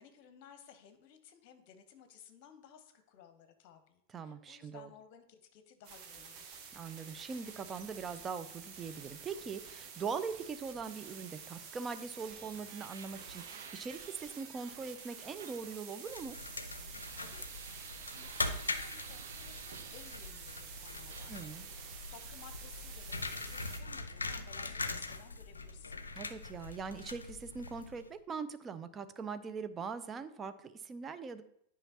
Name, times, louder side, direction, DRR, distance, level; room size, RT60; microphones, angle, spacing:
voice 1, 0.0-6.6 17.2-17.5 18.1-21.5 22.1-26.0, left 8 dB, 45° left, 9 dB, 0.8 m, -58 dB
voice 2, 4.1-4.9 6.7-16.4 21.3-21.7 26.1-31.4, right 5 dB, 20° right, 11 dB, 0.4 m, -41 dB
sound 1, 5.8-23.8, right 6 dB, 40° right, 1.0 m, -49 dB
sound 2, 12.7-20.7 21.1-22.3, right 6 dB, 65° right, 0.6 m, -54 dB
sound 3, 16.1-28.1, left 3 dB, 75° left, 0.5 m, -42 dB
9.8 x 5.0 x 2.8 m, 0.73 s
figure-of-eight pair, 90°, 0 cm